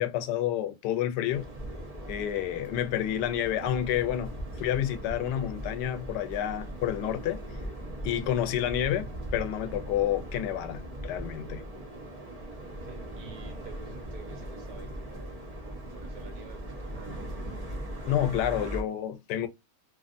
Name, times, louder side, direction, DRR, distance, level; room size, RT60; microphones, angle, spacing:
voice 1, 0.0-1.5 2.1-7.4 8.0-11.6 18.1-19.5, left 11 dB, 90° left, 1.2 m, -29 dB
sound 1, 1.3-18.8, right 1 dB, 40° right, 0.5 m, -39 dB
voice 2, 12.8-17.6, right 5 dB, 90° right, 1.7 m, -51 dB
3.1 x 2.4 x 2.5 m
omnidirectional pair, 1.8 m